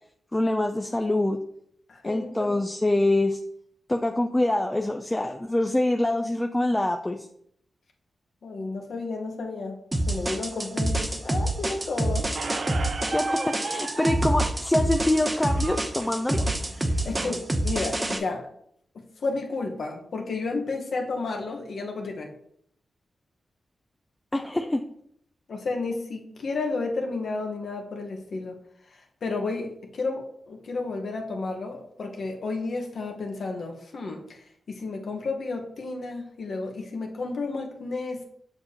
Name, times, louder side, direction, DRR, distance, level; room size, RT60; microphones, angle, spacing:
voice 1, 0.3-1.4 2.0-3.4 3.9-7.3 13.1-16.5 24.3-24.8, left 1 dB, 15° left, 5 dB, 0.4 m, -25 dB
voice 2, 1.9-2.5 8.4-9.8 10.1-12.3 16.8-18.5 18.9-22.3 25.5-28.6 28.9-38.2, left 3 dB, 70° left, 1 dB, 1.2 m, -32 dB
sound 1, 9.9-18.2, right 1 dB, 20° right, 0.8 m, -27 dB
Squeak, 12.3-17.4, right 3 dB, 60° right, 0.5 m, -35 dB
6.7 x 6.7 x 2.9 m, 0.70 s
wide cardioid pair, 100°, 0 cm